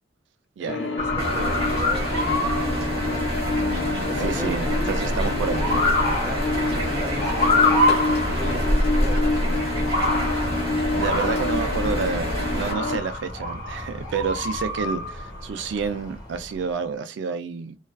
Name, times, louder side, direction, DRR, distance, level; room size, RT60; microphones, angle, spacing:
voice 1, 0.6-3.3 4.1-7.7 8.2-9.6, equal, 5° right, 0.6 m, -36 dB
sound 1, 0.7-13.0, left 3 dB, 70° left, 0.4 m, -28 dB
Motor vehicle (road) / Siren, 1.0-16.5, left 2 dB, 20° left, 0.9 m, -28 dB
sound 2, 1.2-12.7, equal, 30° right, 1.1 m, -27 dB
voice 2, 4.2-5.6 10.9-17.8, right 5 dB, 70° right, 0.3 m, -29 dB
2.3 x 2.3 x 2.2 m
head